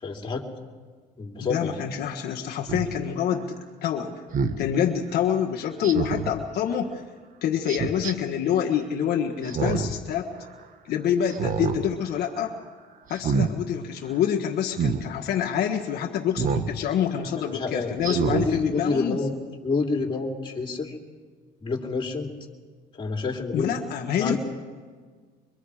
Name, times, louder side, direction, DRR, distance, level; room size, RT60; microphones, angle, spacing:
voice 1, 0.0-0.4 1.2-1.8 17.5-20.9 21.6-22.3 22.9-23.7 24.2-24.4, left 4 dB, 30° left, 1 dB, 3.3 m, -28 dB
voice 2, 1.4-3.5 3.8-4.2 4.6-7.0 7.4-10.3 10.8-12.5 13.1-19.2 23.5-24.4, left 9 dB, 70° left, 1 dB, 1.6 m, -26 dB
Speech synthesizer, 2.7-2.9 4.3-4.6 5.8-6.3 7.7-8.1 9.4-10.0 10.4-10.5 11.3-11.8 12.2-12.5 13.1-13.5 14.7-15.0 16.4-16.7 17.2-17.3 18.0-18.5 19.0-19.1, right 5 dB, 55° right, 1.4 m, -26 dB
24.5 x 23.5 x 5.0 m, 1.5 s
cardioid pair, 110°, 17 cm